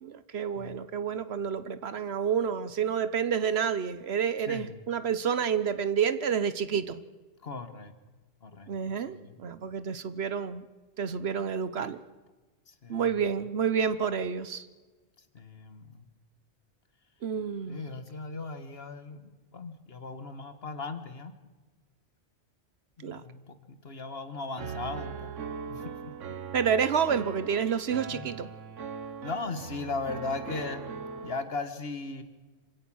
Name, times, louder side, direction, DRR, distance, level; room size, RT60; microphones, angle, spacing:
voice 1, 0.0-7.0 8.7-10.6 11.0-12.0 12.9-14.7 17.2-17.8 23.0-23.2 26.5-28.5, right 7 dB, 60° right, 13 dB, 1.1 m, -29 dB
voice 2, 4.5-4.8 7.4-7.9 8.4-9.4 12.7-13.0 15.3-16.1 17.7-21.3 23.0-25.3 25.7-25.9 28.1-28.3 29.2-32.2, left 3 dB, 55° left, 9 dB, 1.7 m, -38 dB
Piano, 24.6-31.4, right 6 dB, 90° right, 1.4 m, -40 dB
26.0 x 16.5 x 6.3 m, 1.3 s
omnidirectional pair, 1.2 m